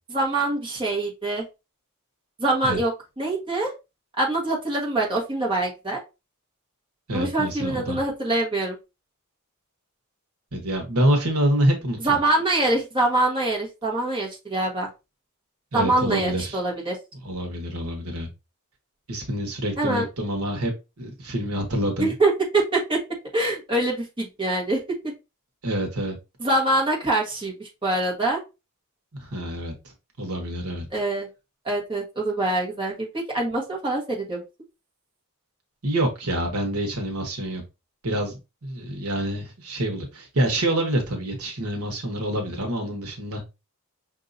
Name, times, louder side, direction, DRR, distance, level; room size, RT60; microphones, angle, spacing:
voice 1, 0.1-1.4 2.4-2.9 3.2-3.7 4.2-6.0 7.1-8.8 12.0-14.9 15.7-17.0 19.8-20.0 22.0-23.0 23.3-24.8 26.4-28.4 30.9-31.3 31.6-34.4, right 2 dB, 20° right, -2 dB, 1.3 m, -24 dB
voice 2, 7.1-8.0 10.5-12.2 15.7-16.6 17.2-18.3 19.1-22.1 25.6-26.2 29.1-30.9 35.8-37.6 38.0-43.4, right 1 dB, 80° right, 3 dB, 1.2 m, -27 dB
5.6 x 2.7 x 2.6 m, 0.26 s
head